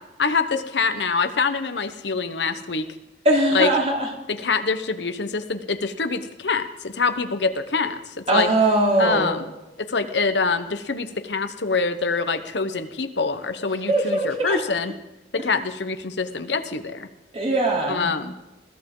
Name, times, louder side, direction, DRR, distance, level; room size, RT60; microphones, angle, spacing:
voice 1, 0.2-2.9 3.5-3.7 4.3-8.5 9.0-9.5 9.8-14.9 15.3-17.1 17.9-18.3, left 4 dB, 75° left, 9 dB, 1.1 m, -25 dB
voice 2, 3.3-4.1 8.3-9.3 13.9-14.6 17.3-18.1, right 1 dB, 40° right, -1 dB, 3.5 m, -20 dB
21.5 x 15.0 x 3.9 m, 1.0 s
head